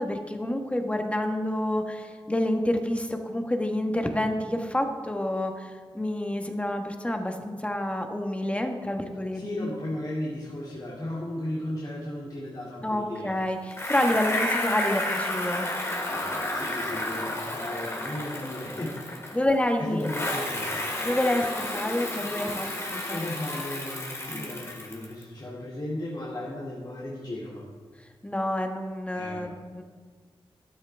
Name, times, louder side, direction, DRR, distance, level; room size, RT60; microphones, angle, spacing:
voice 1, 0.0-9.7 12.8-15.7 19.3-20.1 21.0-23.2 28.2-29.8, left 1 dB, 15° left, 4 dB, 1.3 m, -28 dB
voice 2, 9.3-13.4 16.1-19.0 19.3-19.4 19.8-20.8 23.1-27.7 29.1-29.6, left 1 dB, 45° left, -6 dB, 2.4 m, -35 dB
Bicycle, 13.7-19.6 20.0-25.2, left 1 dB, 30° left, 2.2 m, -31 dB
13.0 x 12.0 x 3.5 m, 1.6 s
wide cardioid pair, 80°, 9 cm